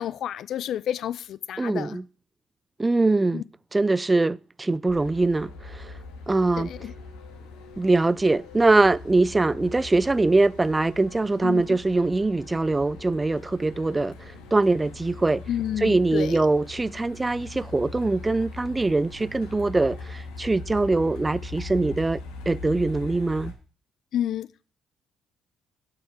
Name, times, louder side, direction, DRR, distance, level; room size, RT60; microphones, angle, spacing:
voice 1, 0.0-2.0 3.3-3.4 6.6-6.9 11.4-11.6 15.5-16.4 24.1-24.6, left 10 dB, 65° left, 0.4 m, -30 dB
voice 2, 1.6-2.0 2.8-3.4 3.7-5.9 6.3-6.7 7.8-15.4 15.8-23.5, right 2 dB, 20° right, 0.4 m, -23 dB
Truck, 4.9-23.5, left 3 dB, 80° left, 1.5 m, -41 dB
6.1 x 5.8 x 6.0 m
hypercardioid pair, 55°, 0 cm